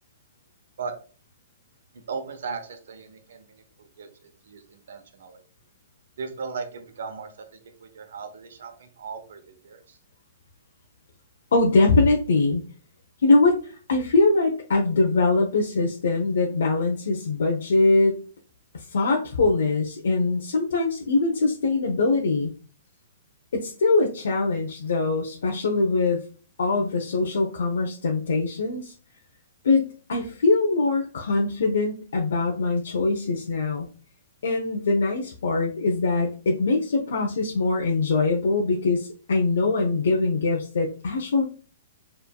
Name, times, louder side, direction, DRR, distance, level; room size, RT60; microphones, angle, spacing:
voice 1, 1.9-5.4 6.2-10.0, right 5 dB, 75° right, 7 dB, 1.0 m, -37 dB
voice 2, 11.5-12.6 13.2-18.2 18.7-22.5 23.5-26.2 26.6-28.9 29.6-29.8 30.1-33.9 34.4-41.4, left 3 dB, 80° left, 1 dB, 0.8 m, -22 dB
6.9 x 3.3 x 2.3 m, 0.38 s
hypercardioid pair, 165°, 0 cm